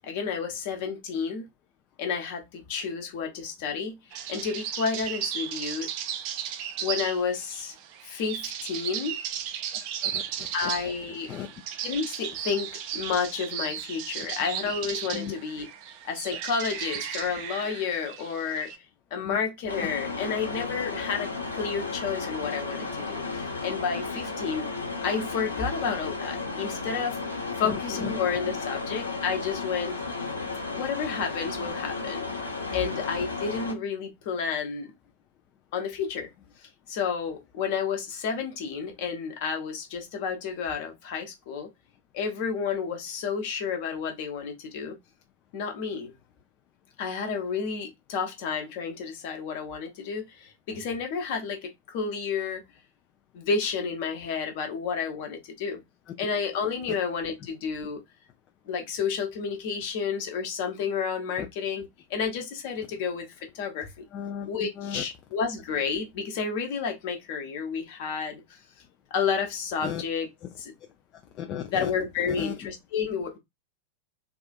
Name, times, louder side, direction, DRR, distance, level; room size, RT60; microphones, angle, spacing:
voice 1, 0.0-1.5 2.0-5.9 6.8-7.7 8.0-9.2 10.5-11.3 11.8-15.7 16.0-18.7 19.1-24.7 25.0-30.0 30.7-32.3 32.7-34.9 35.7-36.3 36.6-41.7 42.1-45.0 45.5-46.1 47.0-52.6 53.3-55.8 56.2-58.0 58.7-63.3 63.5-64.0 64.5-68.6 69.1-70.3 70.6-70.7 71.7-73.4, left 6 dB, 50° left, 1.0 m, -31 dB
sound 1, 4.1-18.8, right 9 dB, 45° right, 0.4 m, -35 dB
voice 2, 9.7-10.5 11.3-11.5 15.1-15.3 19.2-19.4 27.6-28.1 61.4-61.5 64.1-64.5 64.8-65.0 69.8-70.0 71.4-71.9 72.4-72.5, left 9 dB, 35° left, 0.4 m, -35 dB
sound 2, 19.7-33.7, left 3 dB, 80° left, 0.8 m, -34 dB
3.6 x 2.4 x 2.4 m
figure-of-eight pair, 90°, 0 cm